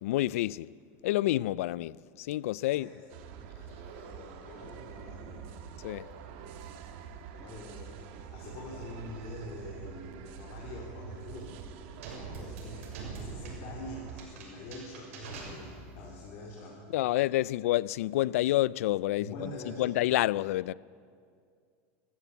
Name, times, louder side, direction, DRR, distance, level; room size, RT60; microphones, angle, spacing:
voice 1, 0.0-0.7 1.0-2.9 5.8-6.1 16.9-19.5 19.8-20.7, left 16 dB, 85° left, 0.4 m, -28 dB
sound 1, 3.1-14.3, right 7 dB, 50° right, 1.7 m, -45 dB
voice 2, 3.9-5.5 7.3-11.6 12.3-12.9 13.2-16.8 19.2-19.9, left 1 dB, 35° left, 3.7 m, -45 dB
sound 2, 12.0-16.1, right 3 dB, 75° right, 6.5 m, -44 dB
24.0 x 14.5 x 8.4 m
supercardioid pair, 180°, 7 cm